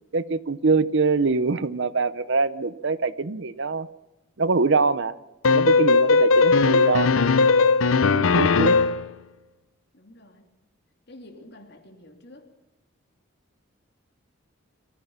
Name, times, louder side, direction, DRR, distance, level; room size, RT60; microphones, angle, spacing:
voice 1, 0.1-3.9 4.4-5.2 5.5-7.3 7.9-8.8, right 4 dB, 60° right, 0.7 m, -24 dB
sound 1, 5.4-9.1, left 4 dB, 75° left, 0.6 m, -18 dB
voice 2, 9.9-10.5 11.1-12.5, left 1 dB, 50° left, 3.0 m, -48 dB
24.0 x 15.0 x 7.4 m
head